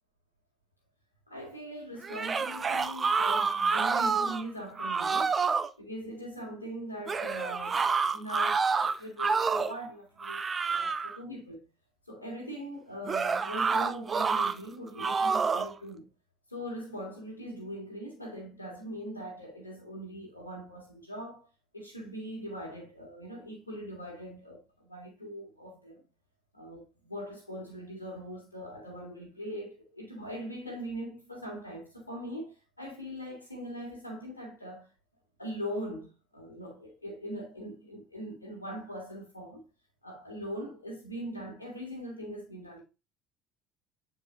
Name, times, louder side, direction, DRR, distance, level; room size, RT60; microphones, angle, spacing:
voice 1, 1.3-5.4 5.8-7.9 8.1-11.7 12.1-16.1 16.5-21.5 21.7-26.0 26.5-34.9 35.4-39.6 40.0-42.8, equal, 85° left, 2.1 m, -41 dB
sound 1, 2.0-4.4 4.8-5.7 7.1-9.8 10.2-11.2 13.1-14.6 15.0-15.7, right 5 dB, 30° right, 0.6 m, -28 dB
8.8 x 4.7 x 2.6 m
figure-of-eight pair, 60°, 0 cm